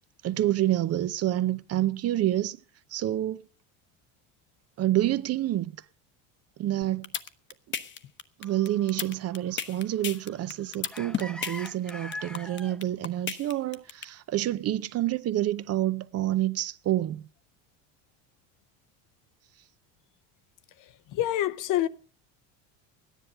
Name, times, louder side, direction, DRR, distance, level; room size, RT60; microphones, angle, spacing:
voice 1, 0.2-2.6 2.9-3.4 4.8-5.7 6.6-7.1 8.4-17.2, right 13 dB, 40° right, 0.7 m, -28 dB
sound 1, 6.8-14.0, left 7 dB, 30° left, 1.0 m, -33 dB
sound 2, 8.4-12.8 13.6-13.7, left 1 dB, ahead, 0.6 m, -44 dB
voice 2, 21.1-21.9, left 13 dB, 55° left, 0.9 m, -26 dB
13.5 x 10.5 x 6.6 m
supercardioid pair, 110°, 37 cm